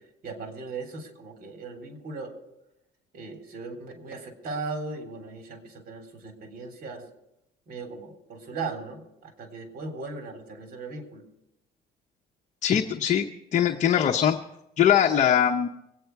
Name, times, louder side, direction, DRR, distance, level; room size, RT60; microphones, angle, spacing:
voice 1, 0.2-2.3 3.1-7.0 7.7-11.2, right 3 dB, 60° right, 4 dB, 3.6 m, -38 dB
voice 2, 12.6-14.4 14.8-15.7, left 9 dB, 45° left, 4 dB, 0.8 m, -22 dB
23.0 x 9.3 x 4.7 m, 0.86 s
cardioid pair, 110°, 17 cm